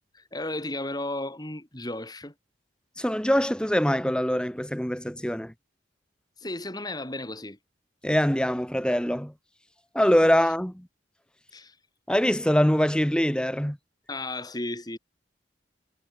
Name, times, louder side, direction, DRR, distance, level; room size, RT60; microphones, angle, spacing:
voice 1, 0.1-2.3 6.4-7.6 11.5-11.8 14.1-15.0, left 2 dB, 20° left, 4.6 m, -34 dB
voice 2, 3.0-5.5 8.0-9.3 9.9-10.9 12.1-13.8, equal, 5° left, 1.6 m, -23 dB
head